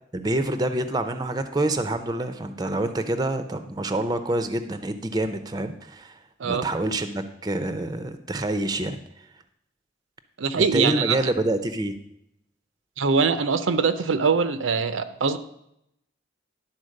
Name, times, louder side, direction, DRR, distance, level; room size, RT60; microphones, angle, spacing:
voice 1, 0.1-6.2 6.4-9.0 10.6-12.0, right 1 dB, 20° right, 9 dB, 0.5 m, -27 dB
voice 2, 10.4-11.3 13.0-15.4, right 5 dB, 85° right, 11 dB, 0.6 m, -23 dB
11.0 x 4.3 x 6.4 m, 0.78 s
head